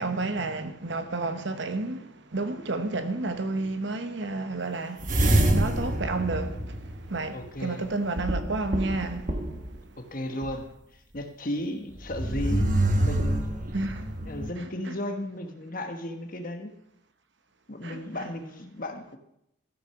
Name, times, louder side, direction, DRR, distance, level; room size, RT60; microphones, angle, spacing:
voice 1, 0.0-9.4 13.7-14.1 14.6-14.9 17.8-18.3, right 3 dB, 60° right, 1.0 m, -31 dB
sound 1, 5.0-7.5 8.2-9.7 10.4-10.5 12.0-14.5, right 1 dB, 40° right, 1.2 m, -26 dB
voice 2, 7.3-7.9 10.0-13.5 14.2-16.8 17.7-19.2, left 1 dB, 45° left, 1.2 m, -35 dB
14.0 x 6.7 x 5.8 m
head